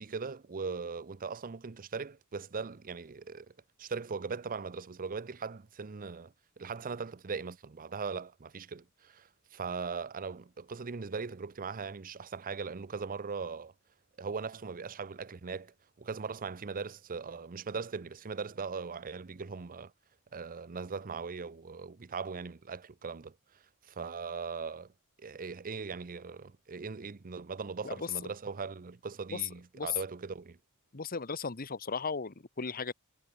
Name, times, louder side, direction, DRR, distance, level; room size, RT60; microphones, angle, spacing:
voice 1, 0.0-3.5 3.8-13.7 14.2-19.9 20.3-23.3 23.8-24.9 25.2-30.6, right 5 dB, 40° right, 0.6 m, -39 dB
voice 2, 30.9-32.9, left 4 dB, 40° left, 1.2 m, -36 dB
head